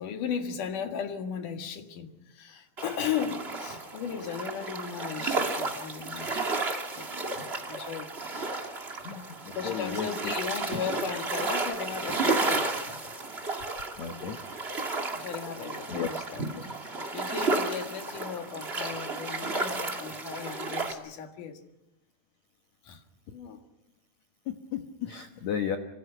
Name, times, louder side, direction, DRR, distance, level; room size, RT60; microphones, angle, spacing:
voice 1, 0.0-6.4 6.9-7.1 7.7-8.1 9.5-12.8 15.1-21.6 22.8-23.0 23.3-23.6, left 7 dB, 55° left, 5 dB, 2.8 m, -36 dB
sound 1, 2.8-20.9, right 3 dB, 45° right, 0.8 m, -32 dB
voice 2, 9.6-10.3 14.0-14.4 15.9-16.1 24.5-25.8, left 8 dB, 90° left, 5 dB, 1.5 m, -33 dB
26.5 x 25.5 x 5.7 m, 0.93 s
omnidirectional pair, 5.2 m